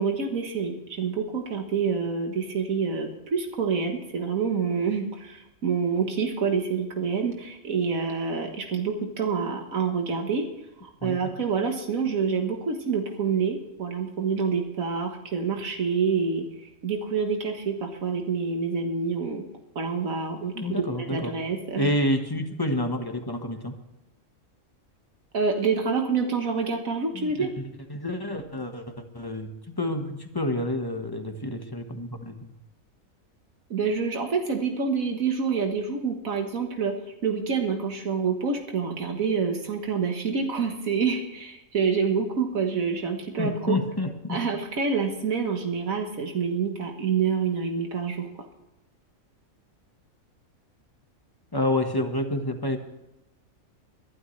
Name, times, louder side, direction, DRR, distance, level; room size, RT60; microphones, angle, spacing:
voice 1, 0.0-10.5 10.8-19.4 19.8-20.8 21.1-21.9 25.3-27.5 33.7-36.9 37.2-43.8 44.3-48.3, right 5 dB, 80° right, 3 dB, 1.8 m, -27 dB
voice 2, 11.0-11.3 20.5-21.3 21.8-23.7 27.1-27.6 27.9-32.5 43.4-44.5 51.5-52.8, left 1 dB, 15° left, 5 dB, 1.3 m, -29 dB
22.5 x 12.0 x 3.3 m, 0.97 s
omnidirectional pair, 1.4 m